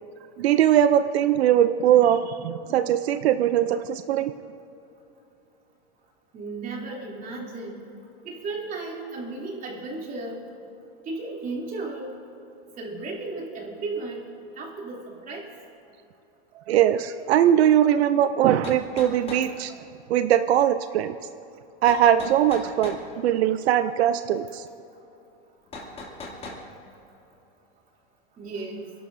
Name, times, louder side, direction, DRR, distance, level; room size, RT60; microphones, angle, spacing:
voice 1, 0.4-4.3 16.7-19.7 20.1-21.2 21.8-24.6, right 10 dB, 85° right, 11 dB, 0.6 m, -21 dB
voice 2, 6.3-7.8 8.2-10.4 11.0-12.1 12.8-14.2 14.6-15.5 28.4-28.9, right 3 dB, 25° right, -2 dB, 3.0 m, -34 dB
sound 1, 18.6-19.5 21.9-23.0 25.7-26.6, left 2 dB, 20° left, 2.6 m, -38 dB
29.0 x 11.5 x 2.7 m, 2.9 s
supercardioid pair, 135°, 31 cm